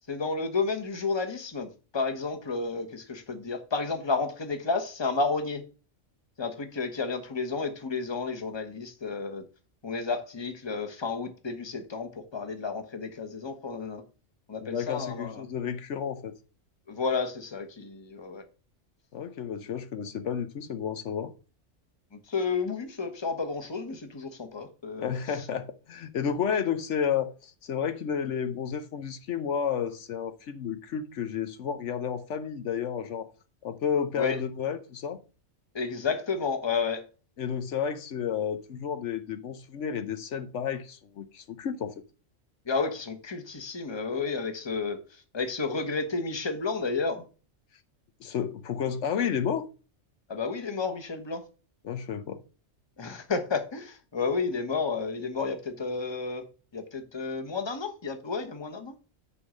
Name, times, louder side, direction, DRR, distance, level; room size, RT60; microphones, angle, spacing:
voice 1, 0.1-5.6 6.4-9.4 9.8-14.0 14.5-15.4 16.9-18.4 22.3-25.1 34.1-34.4 35.7-37.1 42.7-45.0 45.3-47.2 50.3-51.4 53.0-56.4 56.7-58.9, left 4 dB, 25° left, 1.1 m, -31 dB
voice 2, 14.6-16.3 19.1-21.3 25.0-33.3 33.6-35.2 37.4-41.9 48.2-49.7 51.8-52.4, left 7 dB, 75° left, 1.1 m, -31 dB
9.7 x 3.9 x 6.2 m
omnidirectional pair, 1.3 m